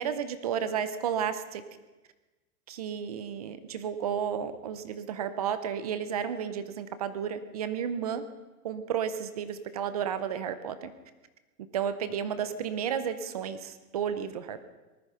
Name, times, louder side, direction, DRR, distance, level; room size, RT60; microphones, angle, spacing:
voice 1, 0.0-1.6 2.7-8.2 8.6-10.9 11.7-14.6, right 8 dB, 25° right, 12 dB, 0.6 m, -32 dB
19.0 x 13.5 x 5.6 m, 1.1 s
hypercardioid pair, 160°, 48 cm